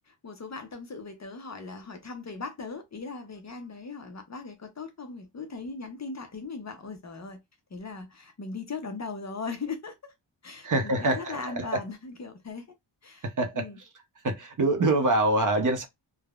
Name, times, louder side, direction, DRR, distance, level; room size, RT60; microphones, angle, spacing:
voice 1, 0.1-7.4 7.7-10.1 10.4-12.7 13.0-13.8, left 4 dB, 35° left, 0.6 m, -39 dB
voice 2, 10.6-11.8 13.2-13.6 14.2-15.8, right 2 dB, 40° right, 0.7 m, -25 dB
3.4 x 2.0 x 2.3 m
wide cardioid pair, 165°, 47 cm